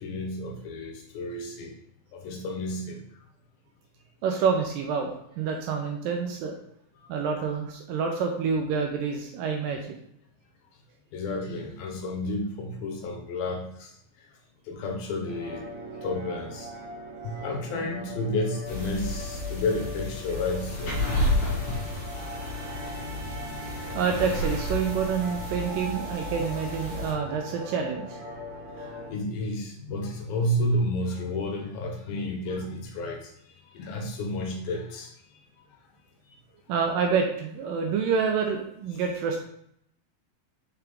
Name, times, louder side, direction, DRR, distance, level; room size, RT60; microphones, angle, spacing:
voice 1, 0.0-1.7 2.1-3.0 7.0-7.1 11.1-14.0 14.7-15.6 16.0-16.7 17.2-21.0 28.8-35.1, left 1 dB, 75° left, 3 dB, 2.5 m, -31 dB
voice 2, 4.2-6.6 7.1-10.0 23.9-28.2 36.7-39.4, right 6 dB, 80° right, 2 dB, 2.1 m, -27 dB
sound 1, 15.3-29.1, equal, 45° right, 2.4 m, -40 dB
sound 2, 18.7-27.1, left 1 dB, 45° left, 1.9 m, -32 dB
5.7 x 5.2 x 3.5 m, 0.71 s
omnidirectional pair, 4.4 m